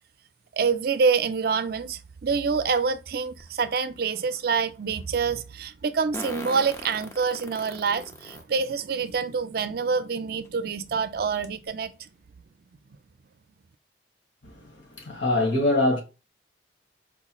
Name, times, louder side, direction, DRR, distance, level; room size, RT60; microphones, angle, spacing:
voice 1, 0.5-12.1, right 5 dB, 55° right, 0.4 m, -26 dB
Fart, 3.4-3.5 6.1-8.4 9.1-9.2 10.4-10.5 10.9-11.0 11.4-11.7, left 1 dB, 15° left, 0.6 m, -38 dB
voice 2, 14.4-16.0, left 2 dB, 85° left, 1.6 m, -24 dB
4.5 x 3.0 x 2.3 m
head